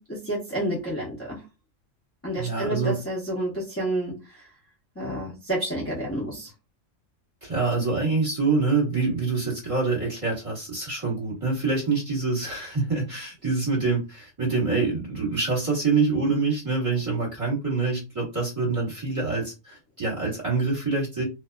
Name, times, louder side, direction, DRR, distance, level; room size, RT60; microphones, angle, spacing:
voice 1, 0.0-1.4 2.2-4.1 5.0-6.5, right 1 dB, 15° left, -6 dB, 0.6 m, -29 dB
voice 2, 2.3-3.0 7.4-21.2, right 4 dB, 25° right, -4 dB, 1.4 m, -26 dB
2.5 x 2.3 x 2.3 m, 0.27 s
omnidirectional pair, 1.4 m